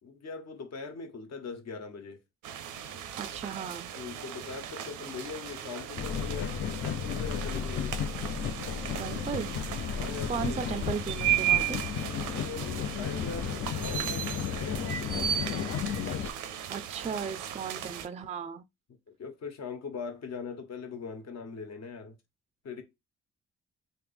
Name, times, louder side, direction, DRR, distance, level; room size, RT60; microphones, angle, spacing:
voice 1, 0.0-2.2 3.9-8.0 9.9-10.6 12.4-15.9 19.1-22.1 22.6-22.8, left 5 dB, 60° left, 1.3 m, -41 dB
sound 1, 2.4-18.1, right 11 dB, 80° right, 0.6 m, -35 dB
voice 2, 3.2-3.9 9.0-9.5 10.3-11.8 16.7-18.6, right 6 dB, 25° right, 0.4 m, -36 dB
sound 2, 6.0-16.3, left 8 dB, 40° left, 0.4 m, -34 dB
3.3 x 2.8 x 3.4 m
cardioid pair, 90°, 30 cm